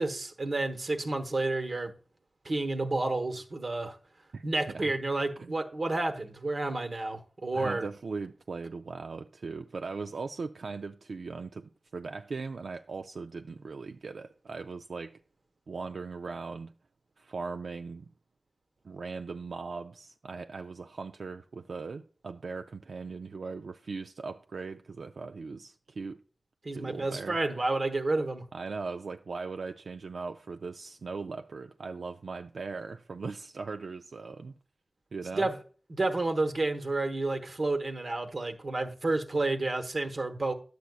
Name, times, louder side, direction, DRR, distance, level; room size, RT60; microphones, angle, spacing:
voice 1, 0.0-1.9 2.4-4.0 4.4-7.8 26.6-28.4 35.4-35.5 35.9-40.5, right 2 dB, 55° right, 1.1 m, -30 dB
voice 2, 4.3-4.9 5.4-5.6 7.5-15.2 15.7-16.7 17.2-18.1 18.8-26.2 26.7-27.4 28.5-34.6 35.1-35.5, right 4 dB, 85° right, 0.3 m, -39 dB
11.5 x 8.0 x 2.3 m
wide cardioid pair, 85°, 0 cm